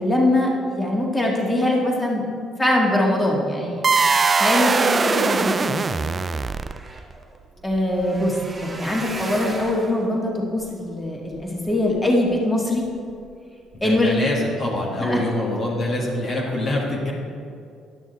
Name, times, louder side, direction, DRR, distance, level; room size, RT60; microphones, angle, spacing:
voice 1, 0.0-2.2 2.6-3.8 4.4-6.0 7.6-12.8 13.8-14.2 15.0-15.2, left 1 dB, 15° left, -2 dB, 1.8 m, -22 dB
sound 1, 3.8-7.0, right 4 dB, 35° right, 0.3 m, -20 dB
sound 2, 5.6-5.7 5.9-12.3 12.8-13.3 13.7-13.9 14.2-14.3, right 2 dB, 15° right, 1.9 m, -38 dB
voice 2, 13.8-17.1, left 1 dB, 45° left, -3 dB, 1.6 m, -25 dB
11.0 x 6.1 x 4.1 m, 2.3 s
supercardioid pair, 75°, 0 cm